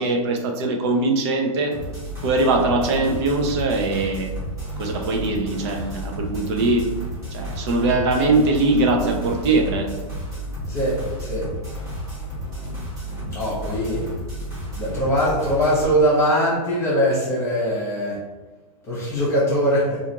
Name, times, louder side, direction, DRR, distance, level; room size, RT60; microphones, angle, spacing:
voice 1, 0.0-1.8 2.2-4.3 4.8-6.9 7.3-10.0, right 2 dB, 45° right, 3 dB, 0.6 m, -21 dB
sound 1, 1.7-15.8, right 1 dB, 15° right, 1.5 m, -32 dB
voice 2, 10.7-11.5 13.3-14.1 14.8-18.2 18.8-20.0, equal, 15° left, -7 dB, 1.0 m, -21 dB
4.8 x 2.5 x 2.9 m, 1.2 s
hypercardioid pair, 155°, 20 cm